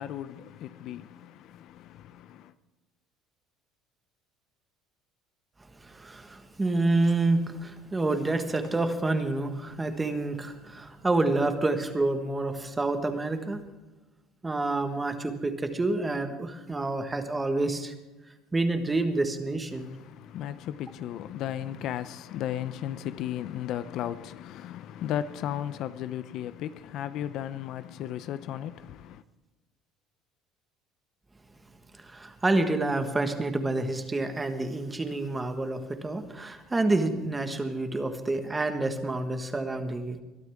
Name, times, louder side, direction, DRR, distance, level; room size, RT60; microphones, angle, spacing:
voice 1, 0.0-2.5 19.8-29.2, left 11 dB, 55° left, 0.6 m, -35 dB
voice 2, 5.8-13.6 14.4-17.9 18.5-19.9 31.9-40.2, right 2 dB, 15° right, 1.4 m, -28 dB
22.0 x 12.0 x 3.6 m
cardioid pair, 145°, 0 cm